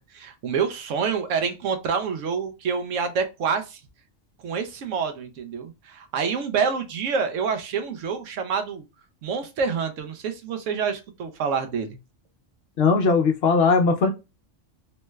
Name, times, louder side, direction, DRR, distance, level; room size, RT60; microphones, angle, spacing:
voice 1, 0.0-3.8 4.4-8.8 9.2-12.0, right 6 dB, 85° right, 1.0 m, -27 dB
voice 2, 12.8-14.1, left 4 dB, 65° left, 0.8 m, -19 dB
3.1 x 3.1 x 2.2 m
omnidirectional pair, 1.3 m